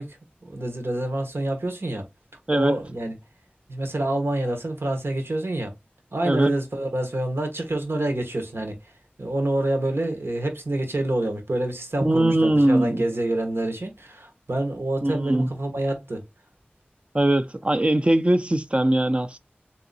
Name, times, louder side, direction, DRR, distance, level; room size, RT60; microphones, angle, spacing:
voice 1, 0.0-2.1 2.5-3.1 3.7-5.7 6.1-8.9 9.2-16.3, right 1 dB, 80° right, 1.3 m, -27 dB
voice 2, 12.0-13.0 15.0-15.5 17.1-19.4, right 1 dB, 30° right, 0.5 m, -21 dB
3.6 x 2.9 x 3.9 m
wide cardioid pair, 45°, 4 cm